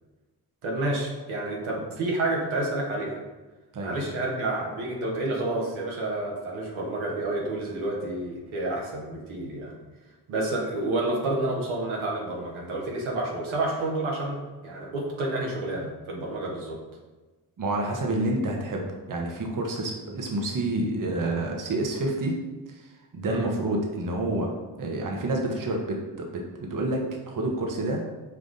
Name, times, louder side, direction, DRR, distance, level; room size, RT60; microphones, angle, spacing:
voice 1, 0.6-3.2 3.8-9.7 10.3-14.4 14.6-16.8 23.3-23.5, right 2 dB, 75° right, -2 dB, 1.2 m, -29 dB
voice 2, 17.6-22.3 22.7-28.0, right 2 dB, 40° right, 1 dB, 0.9 m, -29 dB
5.6 x 2.4 x 3.9 m, 1.2 s
supercardioid pair, 50°, 48 cm